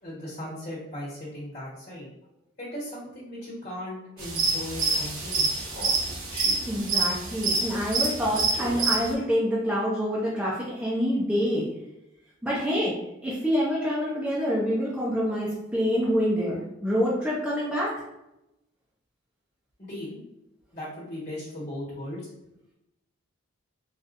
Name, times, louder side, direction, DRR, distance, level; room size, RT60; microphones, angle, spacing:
voice 1, 0.0-2.1 2.6-6.4 19.8-20.2 20.7-22.2, left 1 dB, 40° left, -9 dB, 1.3 m, -38 dB
sound 1, 4.2-9.1, right 3 dB, 80° right, 1.0 m, -27 dB
Human voice, 5.6-6.6 8.2-8.8, equal, 65° left, 1.2 m, -40 dB
voice 2, 6.7-11.6 12.4-12.9 13.2-17.9, equal, 5° right, -7 dB, 0.5 m, -26 dB
4.0 x 2.4 x 2.5 m, 0.88 s
head